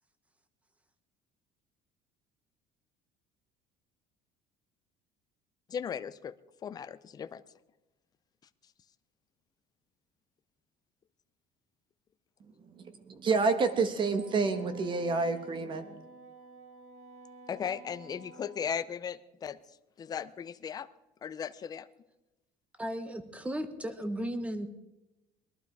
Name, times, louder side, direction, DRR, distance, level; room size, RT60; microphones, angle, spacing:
voice 1, 5.7-6.3 6.6-7.4 17.5-19.6 20.0-20.9 21.2-21.9, left 7 dB, 25° left, 13 dB, 0.5 m, -37 dB
voice 2, 12.4-16.0, right 4 dB, 30° right, 9 dB, 1.5 m, -29 dB
Wind instrument woodwind instrument, 14.1-18.7, right 2 dB, 50° right, 2.6 m, -51 dB
voice 3, 22.8-24.7, equal, 10° right, 11 dB, 1.2 m, -35 dB
21.0 x 12.0 x 4.7 m, 0.98 s
cardioid pair, 150°, 15 cm